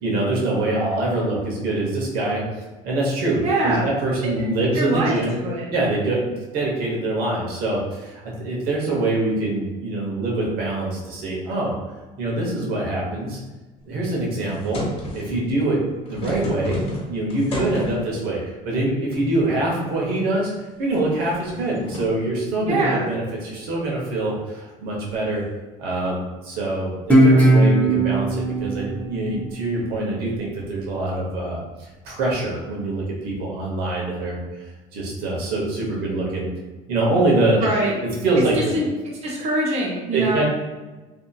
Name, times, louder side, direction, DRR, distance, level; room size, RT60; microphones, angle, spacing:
voice 1, 0.0-2.4 2.8-5.4 5.7-11.7 12.2-13.4 13.8-14.9 15.1-15.8 16.1-16.8 17.1-20.5 20.8-25.4 25.8-34.6 34.9-36.5 36.9-37.7 38.0-38.7 40.1-40.4, right 2 dB, 70° right, -3 dB, 0.9 m, -24 dB
voice 2, 3.4-3.9 4.7-5.7 22.7-23.0 37.6-37.9 38.7-38.9 39.2-40.4, right 1 dB, 40° right, -3 dB, 0.7 m, -23 dB
sound 1, 14.4-15.4 15.9-18.2 19.1-19.6 20.0-20.1 20.7-22.2 25.0-25.3, left 1 dB, 40° left, 1.1 m, -32 dB
Guitar, 27.1-30.3, right 1 dB, 10° left, 0.6 m, -18 dB
2.7 x 2.6 x 2.3 m, 1.2 s
supercardioid pair, 100°, 16 cm